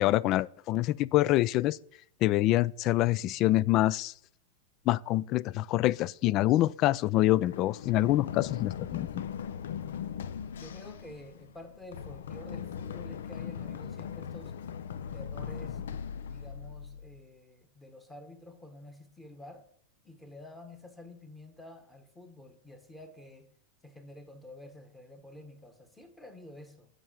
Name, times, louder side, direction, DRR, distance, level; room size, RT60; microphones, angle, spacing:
voice 1, 0.0-1.8 2.2-4.1 4.9-9.2, left 15 dB, 40° left, 0.3 m, -26 dB
Run, 7.5-17.2, left 8 dB, 85° left, 0.6 m, -39 dB
voice 2, 10.6-14.6 15.1-15.8 16.3-19.6 20.0-23.5 23.8-26.9, left 1 dB, 10° left, 1.4 m, -49 dB
9.0 x 5.6 x 6.3 m
supercardioid pair, 140°, 0 cm